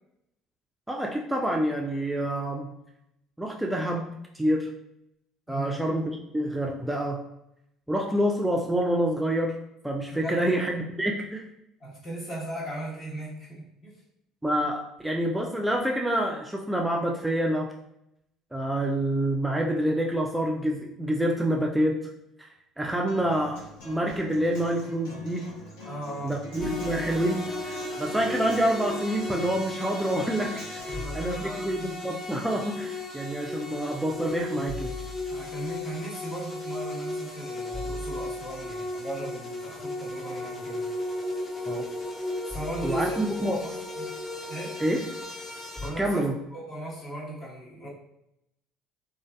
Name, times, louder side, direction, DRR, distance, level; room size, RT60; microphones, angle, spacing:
voice 1, 0.9-2.7 3.4-4.7 5.5-7.2 7.9-9.6 9.8-11.5 14.4-17.7 18.5-22.0 22.4-22.5 22.8-25.5 26.2-30.9 31.1-34.9 41.7-41.8 42.8-43.6 44.8-45.1 46.0-46.3, right 1 dB, 5° right, 0 dB, 0.3 m, -27 dB
voice 2, 10.1-10.6 11.8-14.0 25.8-26.4 30.9-31.9 35.3-40.8 42.4-43.2 43.4-44.1 44.5-44.8 45.8-47.9, right 1 dB, 45° left, -5 dB, 1.1 m, -37 dB
Human voice / Acoustic guitar, 23.1-31.1, left 1 dB, 75° left, 0.7 m, -44 dB
sound 1, 26.6-45.9, left 2 dB, 25° left, 0.7 m, -35 dB
2.5 x 2.3 x 2.2 m, 0.82 s
hypercardioid pair, 65°, 0 cm